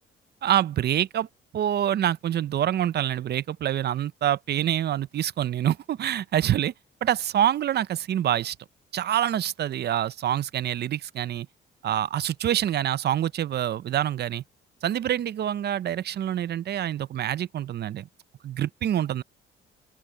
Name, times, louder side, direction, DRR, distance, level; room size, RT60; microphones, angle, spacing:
voice 1, 0.4-1.3 1.5-6.7 7.0-8.6 8.9-11.5 11.8-14.4 14.8-18.1 18.4-19.2, right 11 dB, 55° right, 0.6 m, -26 dB
open air
cardioid pair, 90°, 20 cm